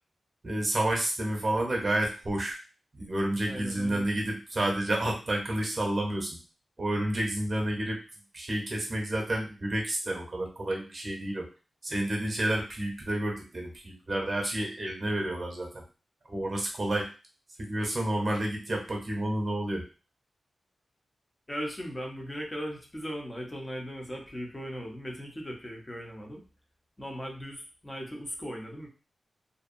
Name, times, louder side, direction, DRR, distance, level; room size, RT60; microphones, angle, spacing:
voice 1, 0.4-2.6 2.9-6.4 6.8-8.0 8.3-11.5 11.8-15.8 16.3-17.1 17.6-19.8, right 1 dB, 30° right, 0 dB, 0.8 m, -30 dB
voice 2, 3.5-4.0 21.5-26.4 27.0-28.9, equal, 15° left, 1 dB, 0.6 m, -38 dB
2.6 x 2.2 x 2.5 m, 0.33 s
wide cardioid pair, 140°, 0 cm